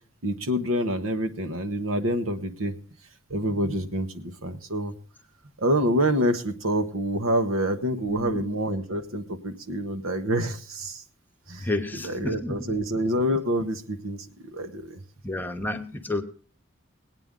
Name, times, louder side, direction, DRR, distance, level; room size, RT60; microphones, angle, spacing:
voice 1, 0.2-2.7 3.3-4.9 5.6-11.0 11.5-11.7 12.0-15.0, equal, 85° right, 7 dB, 1.2 m, -27 dB
voice 2, 8.1-8.5 11.6-12.8 15.2-16.2, left 2 dB, 10° left, 6 dB, 0.9 m, -31 dB
20.0 x 8.9 x 3.7 m, 0.42 s
head